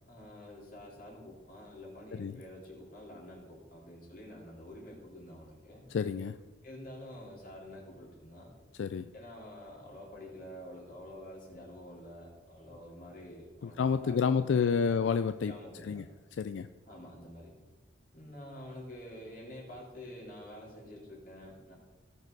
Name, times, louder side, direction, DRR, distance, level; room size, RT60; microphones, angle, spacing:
voice 1, 0.1-5.9 6.6-8.5 9.1-15.0 15.4-16.0 16.9-17.5 18.1-21.8, left 1 dB, 45° left, -4 dB, 3.8 m, -48 dB
voice 2, 5.9-6.4 8.8-9.1 13.6-15.5 15.8-16.0 16.4-16.7, left 6 dB, 80° left, 11 dB, 0.4 m, -29 dB
18.0 x 6.6 x 4.0 m, 1.3 s
head